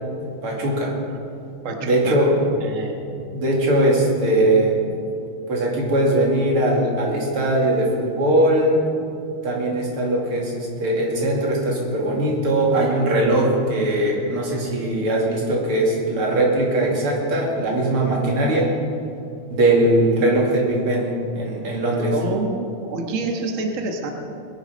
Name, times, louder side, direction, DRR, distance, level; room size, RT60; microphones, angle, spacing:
voice 1, 0.2-0.9 1.8-2.4 3.3-4.8 5.5-8.8 9.4-18.7 19.5-22.2, right 1 dB, 85° right, -2 dB, 3.4 m, -20 dB
voice 2, 1.6-2.2 2.6-3.0 22.1-24.1, right 3 dB, 40° right, 2 dB, 1.5 m, -27 dB
21.0 x 11.0 x 5.2 m, 2.5 s
omnidirectional pair, 2.3 m